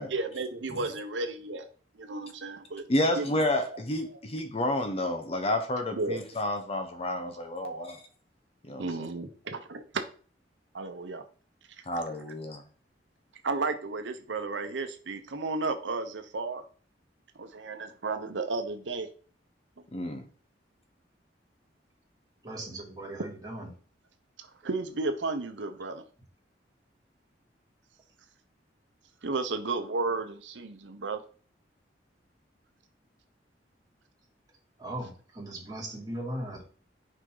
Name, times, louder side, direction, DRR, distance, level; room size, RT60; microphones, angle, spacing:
voice 1, 0.1-1.7 2.0-2.8 3.1-3.8 4.1-4.2 5.9-6.2 7.6-7.8 8.8-10.0 10.7-11.2 11.8-11.9 13.4-16.6 17.4-19.1 24.4-26.0 29.2-31.2, right 3 dB, 90° right, 8 dB, 0.8 m, -33 dB
voice 2, 2.9-7.9 8.7-8.8 11.9-12.6 19.9-20.2, left 1 dB, 35° left, 6 dB, 0.9 m, -30 dB
voice 3, 22.4-23.7 34.8-36.6, right 1 dB, 20° right, -3 dB, 2.7 m, -38 dB
6.3 x 5.0 x 3.9 m, 0.41 s
head